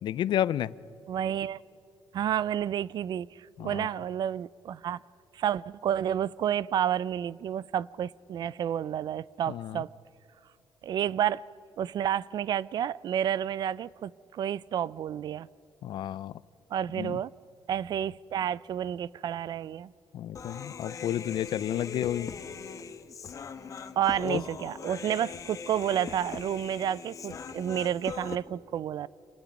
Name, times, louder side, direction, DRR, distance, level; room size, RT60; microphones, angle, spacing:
voice 1, 0.0-0.7 3.6-3.9 9.5-9.8 15.8-16.3 17.0-17.2 20.1-22.3 24.2-24.4, left 11 dB, 65° left, 0.5 m, -31 dB
voice 2, 1.1-1.6 2.1-5.0 5.3-9.9 10.8-11.4 11.8-15.5 16.7-17.3 17.7-19.9 24.0-29.1, right 10 dB, 55° right, 0.4 m, -30 dB
Human voice, 20.3-28.4, left 6 dB, 40° left, 1.1 m, -41 dB
26.0 x 20.5 x 5.2 m
cardioid pair, 125°, 8 cm